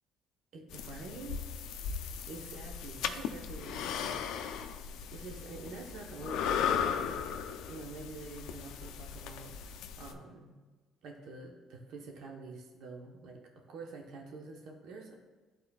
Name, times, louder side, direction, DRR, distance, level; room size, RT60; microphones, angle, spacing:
voice 1, 0.5-1.4 2.3-4.2 5.1-7.2 7.6-10.6 11.0-13.4 13.7-15.2, right 3 dB, 70° right, 1 dB, 1.0 m, -47 dB
sound 1, 0.7-10.1, left 8 dB, 80° left, 0.4 m, -37 dB
11.5 x 4.2 x 2.3 m, 1.3 s
cardioid pair, 90°, 0 cm